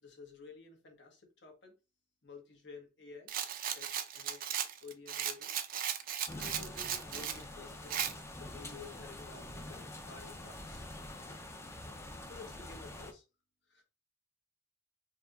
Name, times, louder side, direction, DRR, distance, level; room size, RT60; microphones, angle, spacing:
voice 1, 0.0-1.7 2.2-3.3 3.7-5.5 6.0-10.8 12.3-13.2 13.7-13.8, left 4 dB, 70° left, 2 dB, 1.3 m, -52 dB
Rattle, 3.3-7.4 7.9-8.1, right 9 dB, 50° right, 0.5 m, -36 dB
sound 1, 6.3-13.1, left 1 dB, 15° left, 0.5 m, -46 dB
4.7 x 2.9 x 2.5 m, 0.29 s
head